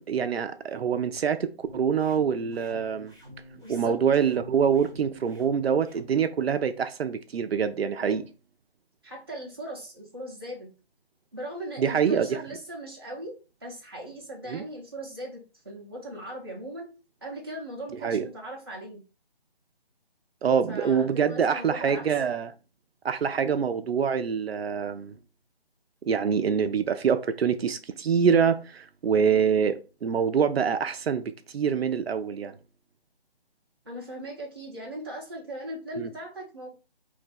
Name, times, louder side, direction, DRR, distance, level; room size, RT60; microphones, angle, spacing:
voice 1, 0.0-3.1 3.7-8.2 11.8-12.4 14.5-14.6 18.0-18.3 20.4-22.5 23.0-25.1 26.1-32.5 36.0-36.1, right 7 dB, 80° right, 0.5 m, -25 dB
sound 1, 1.7-6.1, equal, 10° left, 1.4 m, -49 dB
voice 2, 3.6-4.0 8.0-8.2 9.0-10.7 11.3-16.9 17.2-19.0 20.7-22.1 33.8-36.7, right 1 dB, 25° right, 0.8 m, -39 dB
2.8 x 2.6 x 3.8 m
hypercardioid pair, 180°, 30 cm